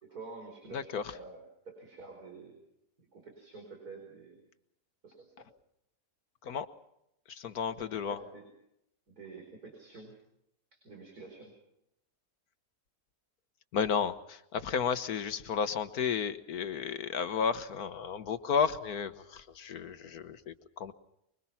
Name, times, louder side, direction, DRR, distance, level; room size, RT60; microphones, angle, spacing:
voice 1, 0.0-2.6 3.0-4.4 5.0-5.5 7.7-8.5 9.1-10.2 10.7-11.5, right 3 dB, 70° right, 2 dB, 5.3 m, -49 dB
voice 2, 0.7-1.0 6.4-6.7 7.3-8.2 13.7-20.9, left 6 dB, 75° left, 11 dB, 1.6 m, -33 dB
25.0 x 23.5 x 5.8 m, 0.79 s
omnidirectional pair, 1.6 m